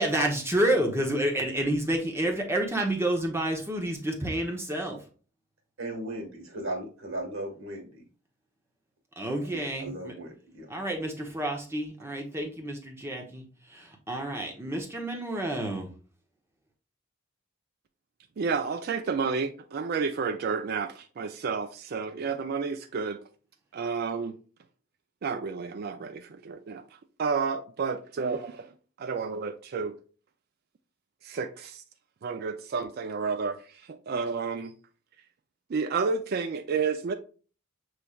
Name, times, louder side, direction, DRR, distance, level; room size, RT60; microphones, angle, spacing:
voice 1, 0.0-5.0 9.2-10.1 10.7-13.4 13.7-15.9, right 1 dB, 10° right, 0.8 m, -29 dB
voice 2, 5.8-8.0 9.8-10.7, right 1 dB, 80° right, 1.6 m, -37 dB
voice 3, 18.4-23.2 23.7-24.4 25.2-26.8 27.2-28.7 29.0-29.9 31.2-31.8 32.2-34.7 35.7-37.1, right 5 dB, 50° right, 0.4 m, -31 dB
6.8 x 3.1 x 2.3 m
head